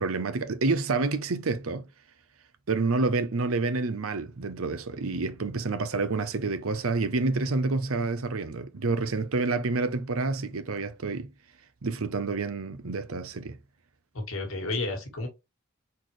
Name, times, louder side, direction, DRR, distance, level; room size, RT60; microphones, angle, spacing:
voice 1, 0.0-1.9 2.7-11.3 11.8-13.6, right 3 dB, 85° right, 0.7 m, -28 dB
voice 2, 14.1-15.3, left 2 dB, 80° left, 1.6 m, -31 dB
4.3 x 4.0 x 3.1 m
head